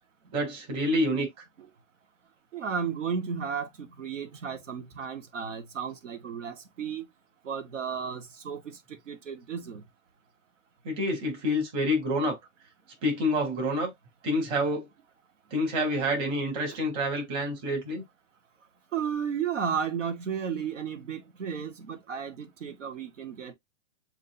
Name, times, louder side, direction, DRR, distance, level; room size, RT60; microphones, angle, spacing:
voice 1, 0.3-1.3 10.8-12.4 13.0-13.9 14.2-14.9 15.5-18.0, equal, 40° right, 3.2 m, -27 dB
voice 2, 2.5-7.0 7.4-9.8 16.7-16.8 18.9-23.5, right 7 dB, 90° right, 1.3 m, -34 dB
7.4 x 2.8 x 2.6 m
hypercardioid pair, 140°, 36 cm